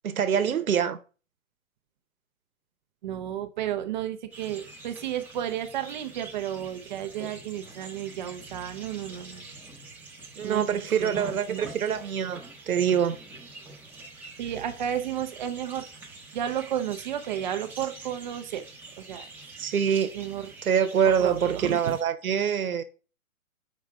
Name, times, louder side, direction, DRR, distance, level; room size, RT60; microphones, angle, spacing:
voice 1, 0.0-1.0 10.4-12.4 12.7-13.2 19.6-20.1 20.6-22.8, right 8 dB, 85° right, 1.0 m, -25 dB
voice 2, 3.0-9.4 10.4-11.7 11.9-12.0 14.4-15.9 16.3-18.6 19.0-19.3 20.1-20.5 21.0-22.0, right 10 dB, 35° right, 0.7 m, -32 dB
sound 1, 4.3-22.0, right 3 dB, 5° right, 0.9 m, -46 dB
6.1 x 4.9 x 3.4 m
hypercardioid pair, 140°, 42 cm